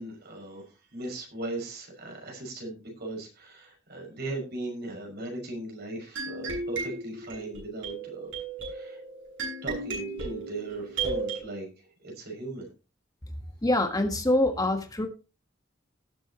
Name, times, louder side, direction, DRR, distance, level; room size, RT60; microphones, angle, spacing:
voice 1, 0.0-8.3 8.7-9.0 9.6-11.7 12.0-12.7, right 2 dB, 55° right, 1 dB, 5.9 m, -38 dB
sound 1, 6.2-11.4, right 4 dB, 70° right, 7.4 m, -34 dB
voice 2, 13.6-15.1, left 1 dB, 20° left, 5 dB, 1.5 m, -25 dB
18.5 x 8.0 x 3.0 m, 0.31 s
head